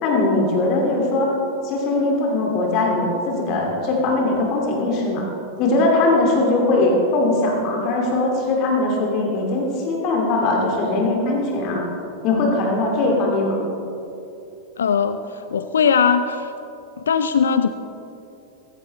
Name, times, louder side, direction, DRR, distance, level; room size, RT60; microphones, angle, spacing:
voice 1, 0.0-1.3 1.6-5.3 5.6-11.8 12.2-13.6, left 2 dB, 40° left, -1 dB, 2.5 m, -20 dB
voice 2, 14.8-16.5 17.0-17.7, left 6 dB, 65° left, 10 dB, 0.5 m, -19 dB
17.0 x 15.5 x 3.2 m, 2.8 s
figure-of-eight pair, 90°, 0 cm